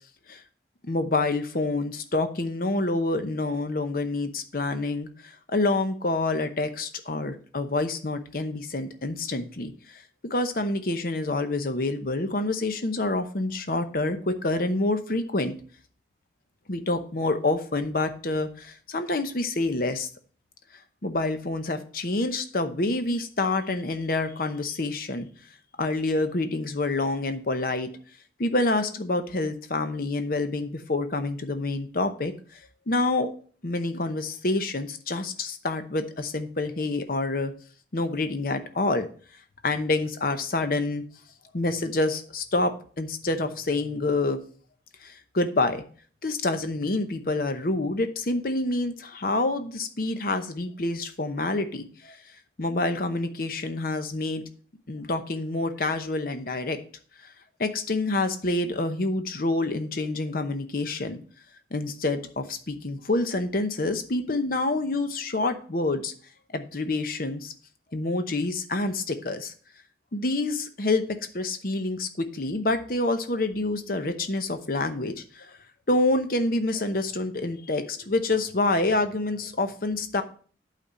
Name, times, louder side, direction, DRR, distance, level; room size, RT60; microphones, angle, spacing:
voice 1, 0.8-10.0 10.3-15.5 16.7-20.1 21.0-25.3 25.8-27.9 28.4-32.3 32.9-33.3 33.6-37.5 37.9-39.1 39.6-41.0 41.5-44.4 45.0-45.8 46.2-52.2 52.6-54.4 54.9-56.8 57.6-61.2 61.7-66.1 66.5-67.5 67.9-69.5 70.1-71.0 71.3-75.5 75.9-80.2, left 2 dB, 55° left, 8 dB, 0.9 m, -27 dB
8.4 x 4.2 x 6.2 m, 0.44 s
head